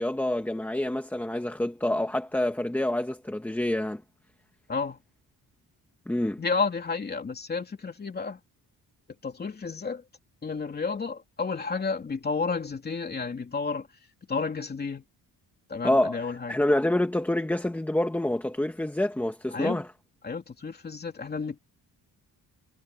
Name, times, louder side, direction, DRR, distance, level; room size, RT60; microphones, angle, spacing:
voice 1, 0.0-4.0 6.1-6.4 15.8-19.9, left 1 dB, 5° left, 1.2 m, -27 dB
voice 2, 6.4-8.4 9.2-10.0 10.4-13.9 14.3-15.0 15.7-16.6 19.5-19.8 20.2-21.6, left 4 dB, 25° left, 2.9 m, -31 dB
wide cardioid pair, 175°, 36 cm